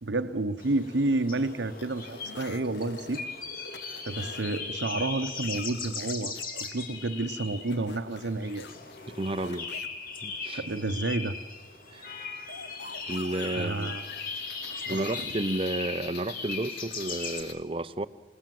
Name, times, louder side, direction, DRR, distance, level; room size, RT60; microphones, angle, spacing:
voice 1, 0.0-3.2 4.1-8.6 10.5-11.4 13.5-14.0 14.9-15.3, right 2 dB, 90° right, 8 dB, 0.9 m, -30 dB
sound 1, 0.6-17.4, left 4 dB, 50° left, 2.2 m, -38 dB
sound 2, 1.8-3.2 3.7-4.6 5.0-6.7 7.7-9.9 12.5-17.5, left 6 dB, 80° left, 1.1 m, -46 dB
voice 2, 9.1-9.7 10.2-10.6 11.9-12.1 13.1-14.0 14.9-18.1, right 2 dB, 30° right, 11 dB, 0.7 m, -32 dB
28.5 x 18.0 x 7.7 m, 1.2 s
head